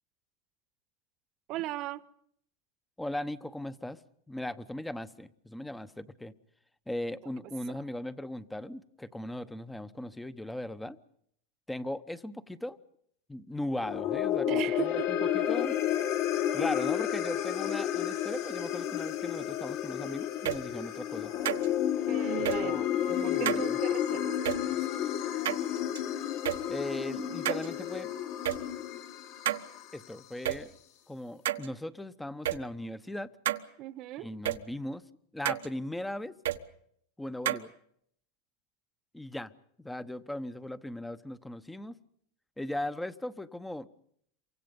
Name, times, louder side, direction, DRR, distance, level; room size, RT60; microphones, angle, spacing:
voice 1, 1.5-2.0 7.4-7.5 14.5-15.1 22.1-22.8 23.2-24.9 33.8-34.3, right 15 dB, 45° right, 1.1 m, -37 dB
voice 2, 3.0-4.0 4.3-6.3 6.9-11.0 11.7-12.8 13.3-15.8 16.5-21.3 22.4-23.8 26.7-28.1 29.9-30.7 31.1-33.3 34.2-35.0 35.3-36.4 37.2-37.7 39.1-39.5 39.8-41.9 42.6-43.9, left 1 dB, 5° left, 0.9 m, -38 dB
sound 1, 13.7-30.2, left 10 dB, 55° left, 2.7 m, -31 dB
sound 2, 20.4-20.6 21.4-21.7 22.4-22.6 23.4-23.6 24.4-24.6 25.4-26.0 26.4-26.6 27.4-27.7 28.4-28.6 29.4-29.6 30.4-30.6 31.4-31.7 32.4-32.6 33.4-33.6 34.4-34.6 35.4-35.7 36.4-36.6 37.4-37.6, right 13 dB, 85° right, 1.3 m, -30 dB
27.5 x 24.5 x 5.3 m
supercardioid pair, 130°, 0 cm